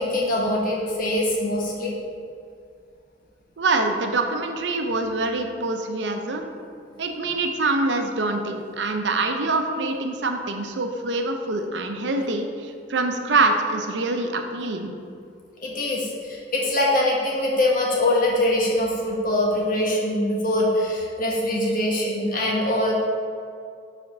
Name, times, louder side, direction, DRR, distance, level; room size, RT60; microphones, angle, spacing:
voice 1, 0.0-1.9 15.6-22.9, left 1 dB, 50° left, -3 dB, 1.3 m, -23 dB
voice 2, 3.6-6.4 7.0-14.9, right 3 dB, 85° right, 4 dB, 0.7 m, -25 dB
5.1 x 4.3 x 6.0 m, 2.3 s
head